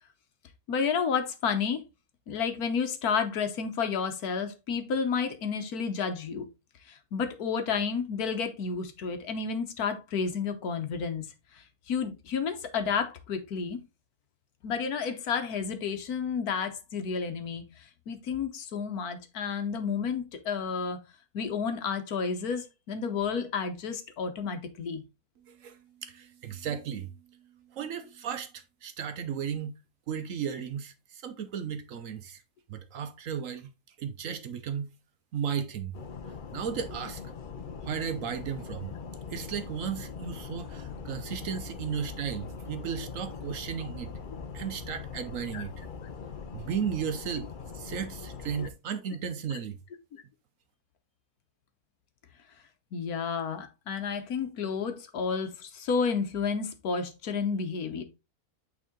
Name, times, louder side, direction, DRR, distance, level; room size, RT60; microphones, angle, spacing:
voice 1, 0.7-1.8 2.3-6.5 6.9-11.3 11.5-13.8 14.6-17.6 18.1-21.0 21.3-25.0 45.5-45.6 48.6-48.7 52.9-58.0, left 6 dB, 70° left, 1.4 m, -31 dB
voice 2, 25.5-27.1 27.7-29.7 30.1-32.4 32.7-33.7 34.0-34.9 35.3-36.0 36.5-37.2 37.8-39.0 39.3-44.1 44.5-45.7 46.5-47.5 47.7-49.8, right 7 dB, 65° right, 1.0 m, -35 dB
sound 1, 35.9-48.7, left 5 dB, 55° left, 0.5 m, -41 dB
8.9 x 3.7 x 3.6 m
omnidirectional pair, 1.7 m